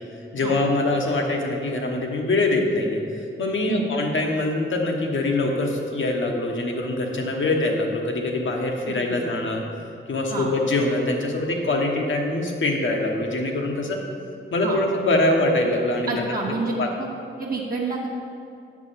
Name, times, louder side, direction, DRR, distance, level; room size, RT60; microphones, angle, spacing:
voice 1, 0.3-3.0 3.4-9.6 10.1-14.0 14.5-16.2 16.8-16.9, left 2 dB, 70° left, 1 dB, 1.1 m, -23 dB
voice 2, 8.9-9.2 10.3-10.5 14.6-14.8 16.1-16.7 17.0-17.1 17.4-18.1, right 4 dB, 45° right, -4 dB, 0.9 m, -28 dB
7.2 x 5.4 x 5.7 m, 2.5 s
wide cardioid pair, 115°, 21 cm